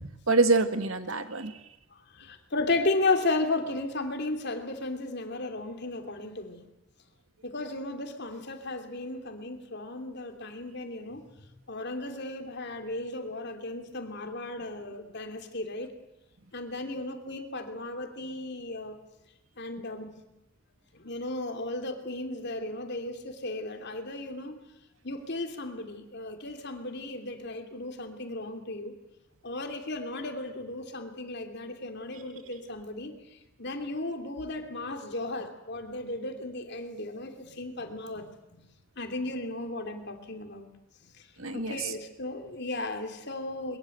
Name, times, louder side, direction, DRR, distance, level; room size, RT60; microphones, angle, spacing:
voice 1, 0.0-1.5 41.4-41.9, right 3 dB, 80° right, 9 dB, 1.9 m, -26 dB
voice 2, 2.1-6.7 7.4-15.9 16.5-19.0 19.6-20.2 20.9-24.6 25.0-28.9 29.4-33.2 33.6-38.6 39.0-40.7 41.0-43.8, left 2 dB, 55° left, 5 dB, 3.1 m, -35 dB
22.0 x 22.0 x 8.0 m, 0.97 s
head